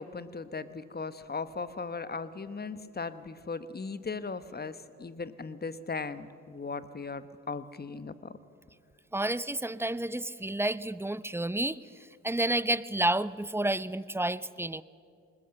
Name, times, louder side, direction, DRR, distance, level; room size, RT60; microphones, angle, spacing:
voice 1, 0.0-8.3, left 4 dB, 30° left, 13 dB, 1.1 m, -38 dB
voice 2, 9.1-11.8 12.2-14.8, right 1 dB, 10° right, 17 dB, 0.6 m, -30 dB
20.5 x 20.0 x 6.6 m, 2.4 s
supercardioid pair, 50°, 31 cm